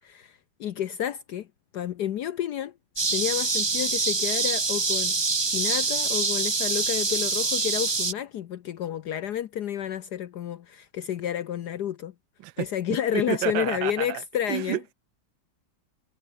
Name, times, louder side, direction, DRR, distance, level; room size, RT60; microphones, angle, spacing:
voice 1, 0.0-1.5 1.7-2.7 3.1-5.2 5.4-12.1 12.6-14.8, left 10 dB, 65° left, 1.3 m, -30 dB
sound 1, 3.0-8.1, right 4 dB, 45° right, 0.3 m, -25 dB
voice 2, 13.1-14.2 14.5-14.9, right 16 dB, 90° right, 1.4 m, -30 dB
omnidirectional pair, 2.0 m